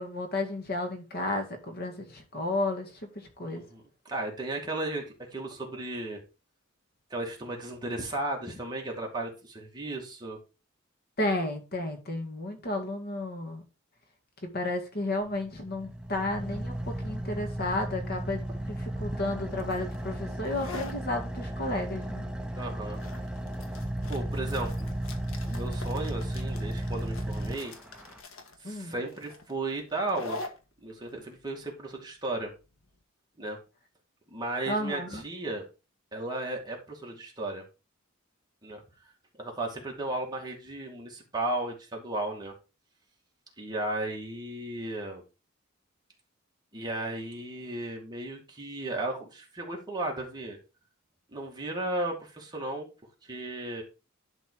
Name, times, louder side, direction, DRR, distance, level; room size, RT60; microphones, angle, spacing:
voice 1, 0.0-3.6 11.2-13.6 14.4-18.4 18.7-22.2 28.6-29.0 34.7-35.2, left 2 dB, 50° left, 2.0 m, -32 dB
voice 2, 3.5-6.2 7.1-10.4 22.5-23.0 24.1-24.9 25.5-27.7 28.6-30.4 30.8-32.5 33.4-33.6 34.3-35.7 36.1-37.6 38.6-38.8 39.4-42.5 43.6-45.2 46.7-50.6 51.3-52.9 53.2-53.8, right 2 dB, 20° right, 2.3 m, -35 dB
Car / Idling, 15.3-28.2, right 1 dB, 5° right, 0.8 m, -35 dB
sound 1, 19.5-33.0, left 3 dB, 80° left, 1.5 m, -45 dB
11.0 x 4.1 x 4.7 m
head